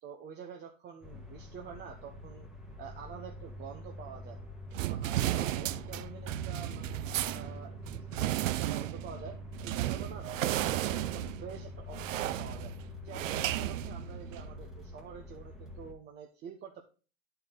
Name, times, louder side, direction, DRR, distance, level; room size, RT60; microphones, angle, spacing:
voice 1, 0.0-2.5 2.8-4.4 4.7-7.0 7.3-9.3 9.6-12.7 13.0-16.8, right 7 dB, 25° right, 3 dB, 0.8 m, -47 dB
sound 1, 1.0-15.9, left 3 dB, ahead, 1.4 m, -46 dB
sound 2, 4.7-14.5, right 14 dB, 90° right, 0.5 m, -34 dB
9.8 x 4.5 x 3.8 m, 0.36 s
hypercardioid pair, 120°, 38 cm